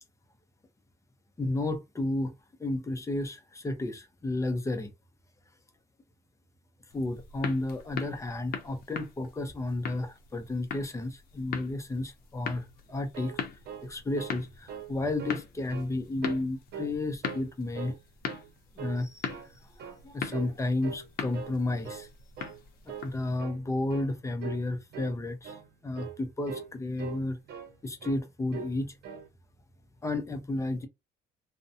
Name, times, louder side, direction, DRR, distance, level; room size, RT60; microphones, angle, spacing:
voice 1, 1.4-2.3 2.6-4.9 6.9-13.4 13.8-17.9 18.8-19.2 19.7-22.1 23.0-25.5 25.8-27.4 27.8-29.0 30.0-30.9, left 2 dB, 15° left, 0.6 m, -32 dB
sound 1, 6.9-23.4, left 7 dB, 60° left, 0.6 m, -41 dB
sound 2, 12.9-14.4 14.7-14.9 15.2-15.9 16.2-17.0 17.2-18.0 18.3-18.5 18.8-19.5 19.8-20.0 20.3-20.6 20.8-21.6 21.8-22.1 22.4-22.6 22.9-23.1 23.4-23.6 23.9-24.1 24.4-24.7 24.9-25.2 25.4-25.7 26.0-26.2 26.5-26.7 27.0-27.8 28.0-28.2 28.5-28.8 29.0-29.3, right 6 dB, 75° right, 0.7 m, -42 dB
2.5 x 2.1 x 2.6 m
cardioid pair, 110°, 17 cm